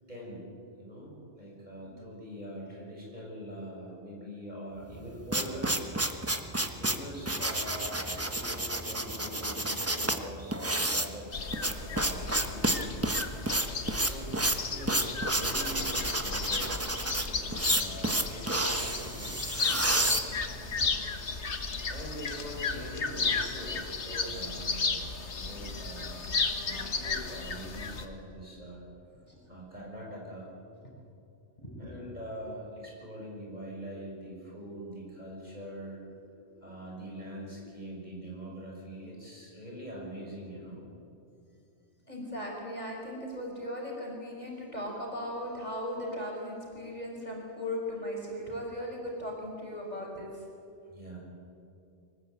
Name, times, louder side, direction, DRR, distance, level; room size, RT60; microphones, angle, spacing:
voice 1, 0.1-0.5 0.8-5.7 6.6-11.3 11.6-13.1 13.9-16.7 17.3-19.4 21.9-26.3 26.6-28.8 29.5-30.5 31.8-36.0 36.5-40.8 44.7-44.8 50.9-51.2, equal, 40° right, -3 dB, 6.9 m, -43 dB
sound 1, 4.9-20.9, right 1 dB, 15° right, 1.2 m, -30 dB
sound 2, 11.3-28.1, left 4 dB, 70° left, 1.8 m, -34 dB
voice 2, 20.2-21.0 29.2-29.4 30.8-30.9 31.6-32.0 42.1-50.4, equal, 35° left, -2 dB, 5.3 m, -38 dB
23.5 x 19.5 x 8.5 m, 2.6 s
omnidirectional pair, 1.2 m